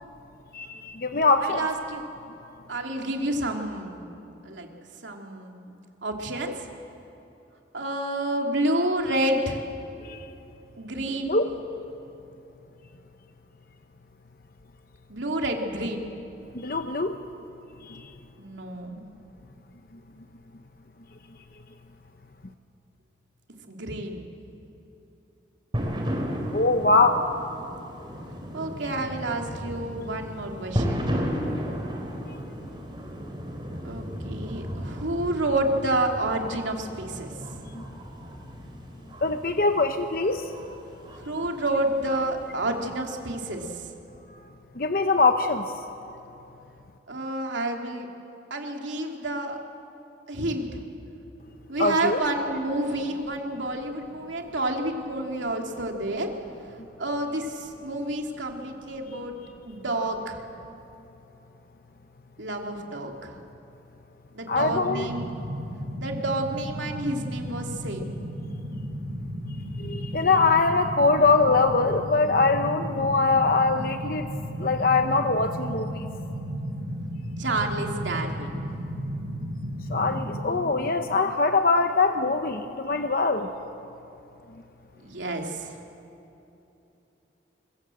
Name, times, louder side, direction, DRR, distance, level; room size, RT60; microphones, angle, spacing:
voice 1, 0.5-1.6 10.0-10.2 11.2-11.5 16.5-17.2 17.8-18.0 26.5-27.2 37.7-37.8 39.2-40.5 44.8-45.6 51.8-52.2 64.5-65.1 69.8-74.3 74.6-76.1 79.9-83.5, left 3 dB, 50° left, 6 dB, 0.9 m, -23 dB
voice 2, 1.4-2.0 2.7-4.7 5.0-5.7 6.0-6.7 7.7-9.6 10.8-11.4 15.1-16.1 18.4-19.0 23.6-24.3 28.5-31.1 33.8-37.3 41.1-43.9 47.1-48.1 48.5-49.6 50.3-50.8 51.7-56.3 57.0-59.4 59.7-60.4 62.4-63.4 64.3-65.2 66.0-68.2 77.4-78.5 85.0-85.8, right 1 dB, 80° right, 2 dB, 2.7 m, -29 dB
sound 1, 25.7-43.7, equal, 25° right, 3.2 m, -35 dB
sound 2, 64.5-80.4, equal, 60° right, 4.2 m, -34 dB
25.0 x 22.0 x 7.8 m, 2.9 s
head